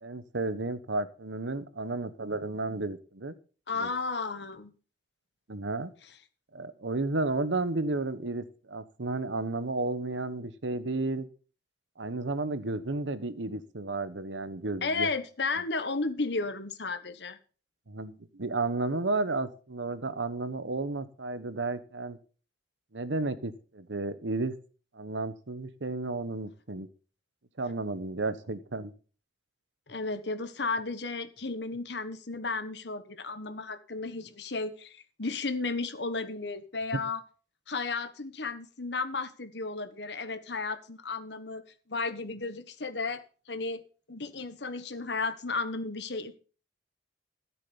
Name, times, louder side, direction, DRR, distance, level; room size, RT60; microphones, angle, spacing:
voice 1, 0.0-3.3 3.8-3.9 5.5-5.9 6.5-11.3 12.0-15.1 17.9-22.2 22.9-24.5 24.9-26.9 27.6-28.9, right 2 dB, 90° right, 13 dB, 1.1 m, -32 dB
voice 2, 3.7-4.7 14.8-17.4 29.9-37.2 37.7-41.6 41.9-43.8 44.1-46.4, left 3 dB, 70° left, 10 dB, 1.4 m, -33 dB
13.5 x 7.6 x 5.5 m, 0.39 s
head